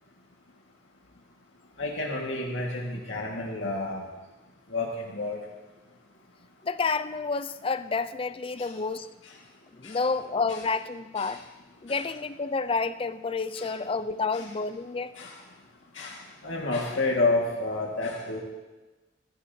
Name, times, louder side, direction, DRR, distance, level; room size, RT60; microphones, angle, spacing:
voice 1, 1.8-4.0 4.7-5.4 9.8-10.0 10.5-10.6 11.2-11.4 11.9-12.1 13.5-13.7 14.3-14.5 15.2-15.3 16.0-16.2 16.4-18.4, left 2 dB, 85° left, -2 dB, 1.8 m, -30 dB
voice 2, 6.6-9.1 9.7-11.4 11.8-15.1, left 4 dB, 30° left, 13 dB, 0.4 m, -29 dB
21.5 x 12.5 x 2.7 m, 1.2 s
head